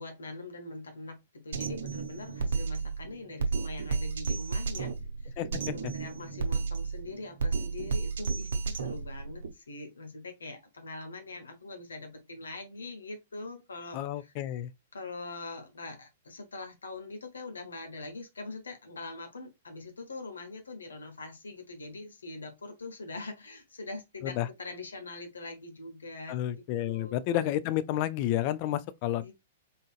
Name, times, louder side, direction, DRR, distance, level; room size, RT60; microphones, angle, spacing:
voice 1, 0.0-4.9 5.2-5.3 5.6-14.3 14.9-26.3 26.8-27.2 29.2-29.3, left 2 dB, 70° left, 1.1 m, -43 dB
Drum kit, 1.5-9.5, right 4 dB, 60° right, 0.8 m, -32 dB
voice 2, 5.4-5.7 13.9-14.7 24.2-24.5 26.3-29.3, left 12 dB, 40° left, 0.4 m, -31 dB
3.8 x 3.7 x 2.4 m
figure-of-eight pair, 105°, 0 cm